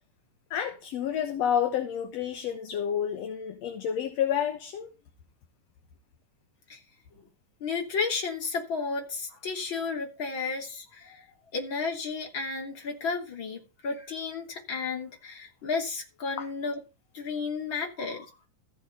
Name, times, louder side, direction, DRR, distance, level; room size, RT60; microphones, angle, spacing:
voice 1, 0.5-4.9 16.4-16.5, left 9 dB, 60° left, 2.1 m, -29 dB
voice 2, 7.6-11.3 11.5-16.8 17.1-18.3, left 4 dB, 40° left, 3.6 m, -33 dB
15.0 x 6.5 x 5.3 m
omnidirectional pair, 3.7 m